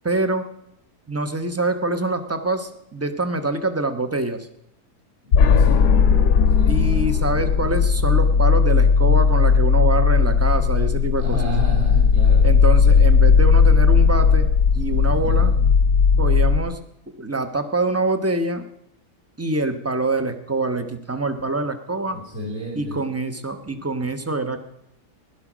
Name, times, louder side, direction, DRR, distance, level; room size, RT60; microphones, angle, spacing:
voice 1, 0.0-0.4 1.1-4.5 6.7-11.4 12.4-14.5 14.7-15.5 16.2-16.8 17.1-18.6 19.4-22.2 22.7-24.6, right 2 dB, 10° right, 7 dB, 0.8 m, -25 dB
sound 1, 5.3-16.6, left 6 dB, 80° left, 1.4 m, -16 dB
voice 2, 5.3-5.8 6.6-6.9 11.1-12.5 15.1-15.5 22.1-23.0, equal, 45° right, -2 dB, 5.0 m, -30 dB
16.0 x 11.5 x 6.1 m, 0.80 s
omnidirectional pair, 1.7 m